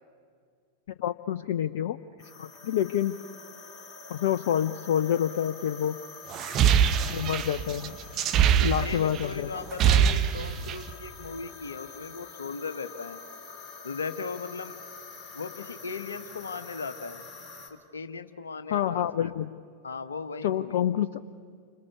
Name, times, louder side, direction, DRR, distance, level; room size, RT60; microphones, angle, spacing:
voice 1, 1.0-2.0 2.4-3.2 4.1-6.0 7.1-7.9 8.6-9.5 18.7-19.6 20.4-21.2, left 10 dB, 55° left, 14 dB, 0.6 m, -27 dB
sound 1, 2.2-17.7, left 4 dB, 25° left, 3.7 m, -46 dB
sound 2, 6.3-9.2 9.6-10.9, right 8 dB, 35° right, 1.2 m, -23 dB
voice 2, 8.6-13.2 13.8-14.8 15.3-17.2 17.9-19.5 19.8-20.8, left 5 dB, 70° left, 9 dB, 1.3 m, -38 dB
29.5 x 26.5 x 6.9 m, 2.1 s
figure-of-eight pair, 90°, 0 cm